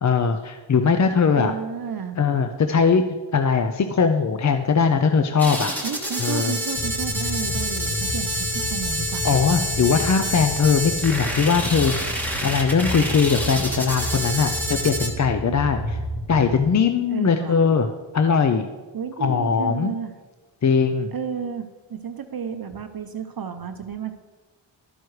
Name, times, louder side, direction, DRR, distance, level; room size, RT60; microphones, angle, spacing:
voice 1, 0.0-1.5 2.2-3.0 3.3-5.7 6.2-6.5 9.2-12.0 12.4-14.5 14.8-15.8 16.3-17.9 18.1-18.7 19.2-19.9 20.6-21.1, left 5 dB, 40° left, 6 dB, 0.5 m, -20 dB
voice 2, 1.3-2.2 5.8-9.3 15.5-15.6 17.1-17.6 18.9-20.1 21.1-24.1, right 7 dB, 50° right, 8 dB, 0.6 m, -32 dB
sound 1, 5.4-15.1, equal, 5° left, 1.4 m, -28 dB
sound 2, 6.7-16.6, left 1 dB, 85° left, 1.2 m, -32 dB
12.0 x 9.3 x 3.2 m, 1.3 s
wide cardioid pair, 120°, 45 cm